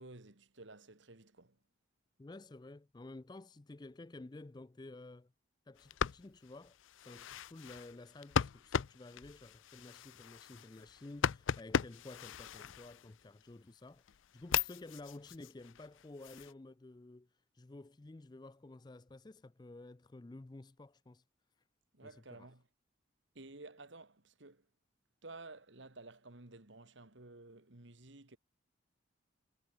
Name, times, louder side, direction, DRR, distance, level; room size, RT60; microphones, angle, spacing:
voice 1, 0.0-1.6 21.9-22.6 23.3-24.7 25.2-28.4, right 2 dB, 75° right, 2.1 m, -53 dB
voice 2, 2.2-5.3 5.7-21.2 22.0-22.5, left 2 dB, 20° left, 0.4 m, -52 dB
sound 1, 5.8-13.4 13.9-16.5, left 7 dB, 85° left, 0.5 m, -38 dB
head